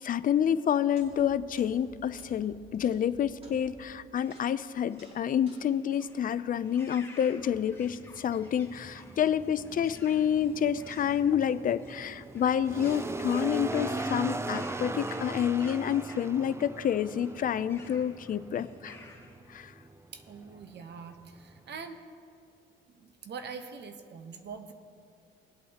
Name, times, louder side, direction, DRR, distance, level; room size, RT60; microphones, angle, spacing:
voice 1, 0.0-19.0 19.5-19.7, left 9 dB, 45° left, 14 dB, 0.5 m, -28 dB
sound 1, 0.8-7.1, left 1 dB, 30° right, 2.6 m, -56 dB
sound 2, 4.1-19.3, left 2 dB, 10° left, 2.1 m, -54 dB
sound 3, 7.4-21.9, right 2 dB, 15° right, 0.4 m, -39 dB
voice 2, 20.1-22.0 22.9-24.7, right 5 dB, 60° right, 7 dB, 1.0 m, -43 dB
21.5 x 8.4 x 2.9 m, 2.4 s
cardioid pair, 90°, 20 cm